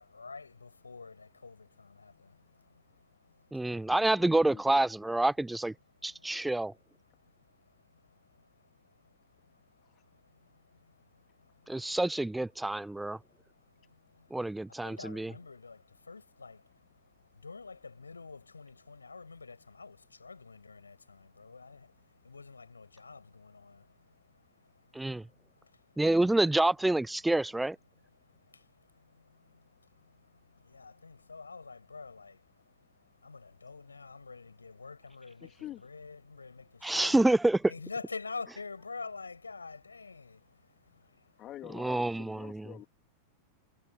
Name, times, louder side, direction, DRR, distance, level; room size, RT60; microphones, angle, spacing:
voice 1, 0.0-3.9 5.8-6.5 7.0-12.0 12.8-26.0 27.9-35.6 35.8-37.3 37.6-41.4, left 4 dB, 80° left, 7.6 m, -49 dB
voice 2, 3.5-5.7 6.0-6.7 11.7-13.2 14.3-15.3 24.9-25.2 26.0-27.8 36.8-37.7 41.8-42.6, right 2 dB, 5° right, 0.5 m, -27 dB
voice 3, 4.1-4.6 9.9-10.0 35.4-35.8 41.4-42.9, left 13 dB, 30° left, 2.2 m, -46 dB
figure-of-eight pair, 90°, 0 cm